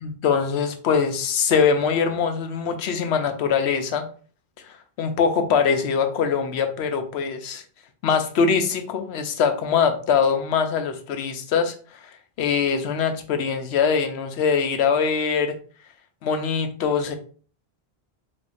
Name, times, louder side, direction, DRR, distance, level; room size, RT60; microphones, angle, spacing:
voice 1, 0.0-4.1 5.0-7.6 8.0-11.7 12.4-15.5 16.2-17.1, left 6 dB, 80° left, 7 dB, 0.9 m, -22 dB
3.6 x 3.3 x 2.5 m, 0.41 s
omnidirectional pair, 1.1 m